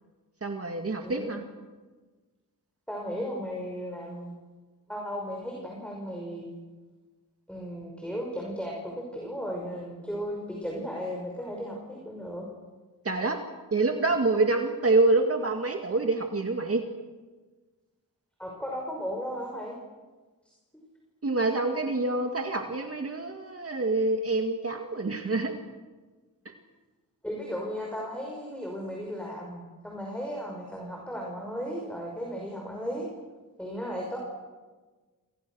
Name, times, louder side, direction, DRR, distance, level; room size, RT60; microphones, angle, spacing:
voice 1, 0.4-1.4 13.0-13.4 13.7-16.8 21.2-25.6 26.5-26.6, right 3 dB, 40° right, 4 dB, 2.1 m, -26 dB
voice 2, 1.0-1.4 2.9-4.3 4.9-6.5 7.5-12.5 18.4-19.7 27.2-33.1 33.6-34.2, equal, 5° left, -1 dB, 5.7 m, -35 dB
28.5 x 26.0 x 6.4 m, 1.3 s
wide cardioid pair, 110°, 34 cm